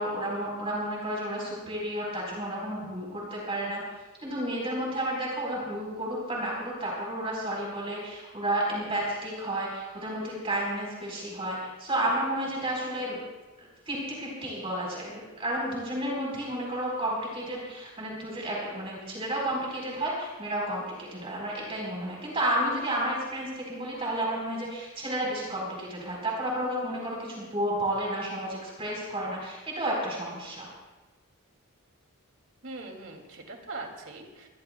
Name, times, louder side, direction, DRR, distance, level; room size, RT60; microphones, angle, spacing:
voice 1, 0.0-3.8 4.2-13.2 13.6-30.7, right 1 dB, 25° right, -3 dB, 4.3 m, -31 dB
voice 2, 32.6-34.5, right 3 dB, 60° right, 2 dB, 2.7 m, -41 dB
23.5 x 20.0 x 2.3 m, 1.2 s
head